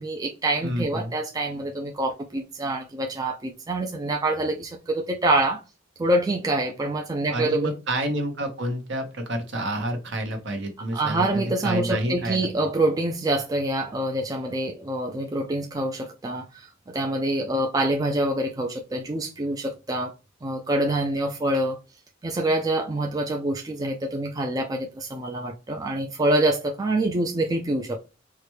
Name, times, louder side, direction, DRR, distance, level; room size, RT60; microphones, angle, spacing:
voice 1, 0.0-5.6 6.0-7.7 10.9-20.1 20.4-21.8 22.2-28.0, right 1 dB, 20° right, 0.3 m, -26 dB
voice 2, 0.6-1.1 7.3-12.5, right 1 dB, 60° right, 1.0 m, -29 dB
4.8 x 2.2 x 3.1 m
head